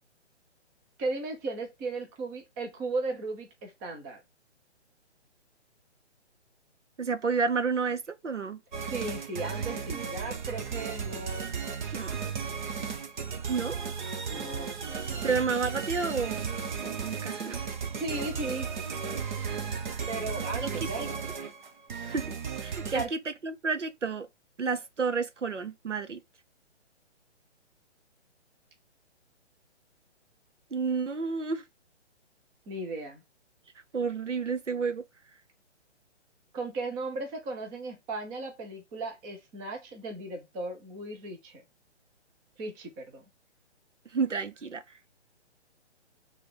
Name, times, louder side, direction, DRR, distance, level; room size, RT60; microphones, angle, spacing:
voice 1, 1.0-4.2 8.9-11.4 14.3-15.3 18.0-18.7 20.1-21.3 22.9-23.1 32.7-33.2 36.5-41.6 42.6-43.2, right 2 dB, 10° right, 0.5 m, -36 dB
voice 2, 7.0-8.6 11.9-12.2 13.5-13.8 15.2-16.5 16.8-17.6 20.6-20.7 21.0-21.1 22.0-22.3 22.6-24.3 24.6-26.2 30.7-31.6 33.9-35.0 44.1-44.8, right 5 dB, 85° right, 0.9 m, -30 dB
sound 1, 8.7-23.1, right 6 dB, 40° right, 1.1 m, -35 dB
6.5 x 3.4 x 5.0 m
figure-of-eight pair, 135°, 35 cm